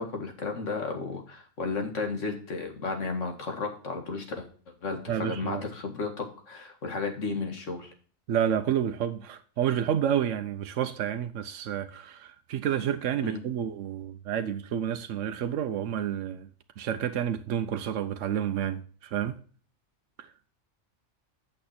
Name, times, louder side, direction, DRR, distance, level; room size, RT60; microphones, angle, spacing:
voice 1, 0.0-4.5 4.8-7.9 13.2-13.4, left 4 dB, 75° left, 2.1 m, -33 dB
voice 2, 5.1-5.6 8.3-16.5 16.8-19.4 20.2-20.3, right 9 dB, 80° right, 1.0 m, -29 dB
8.8 x 6.5 x 4.2 m
omnidirectional pair, 1.3 m